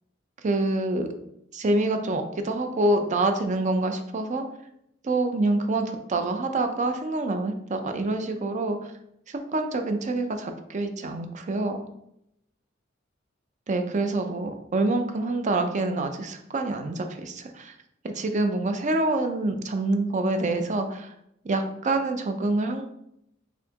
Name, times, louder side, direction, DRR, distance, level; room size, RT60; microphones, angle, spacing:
voice 1, 0.4-1.1 1.5-4.4 5.0-8.8 9.3-11.8 13.7-17.7 18.0-21.1 21.4-22.8, right 2 dB, 40° right, 6 dB, 0.5 m, -26 dB
4.2 x 3.6 x 2.8 m, 0.78 s
head